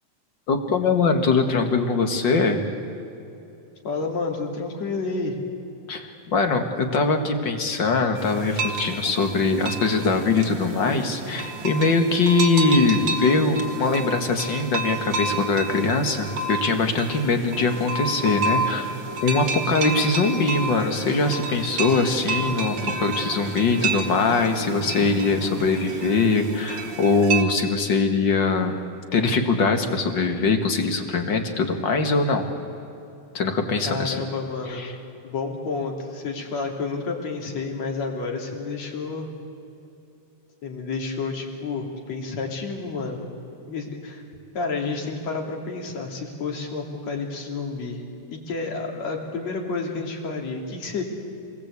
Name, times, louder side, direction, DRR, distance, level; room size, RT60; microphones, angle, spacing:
voice 1, 0.5-2.7 5.9-19.0 19.2-28.8 29.1-32.5 33.3-34.2 34.7-34.9, left 3 dB, 40° left, 5 dB, 2.1 m, -22 dB
voice 2, 3.8-5.4 33.8-34.9 35.2-39.3 40.6-43.3 43.7-44.2 44.5-48.0 48.3-51.0, left 4 dB, 60° left, 1 dB, 4.0 m, -30 dB
sound 1, 8.2-27.4, right 3 dB, 40° right, 2.1 m, -30 dB
27.5 x 20.5 x 8.4 m, 2.8 s
omnidirectional pair, 3.6 m